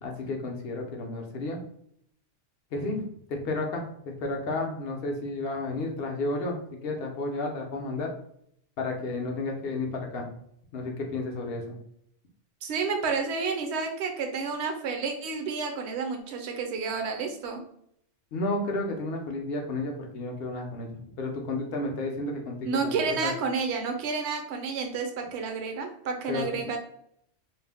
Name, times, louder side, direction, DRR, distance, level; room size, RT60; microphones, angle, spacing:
voice 1, 0.0-1.6 2.7-3.0 3.3-8.1 8.8-10.3 10.7-11.8 18.3-23.3 26.3-26.6, left 2 dB, 65° left, 1 dB, 0.8 m, -32 dB
voice 2, 12.6-17.6 22.6-26.8, right 5 dB, 70° right, 4 dB, 0.8 m, -30 dB
2.5 x 2.0 x 3.4 m, 0.69 s
omnidirectional pair, 1.2 m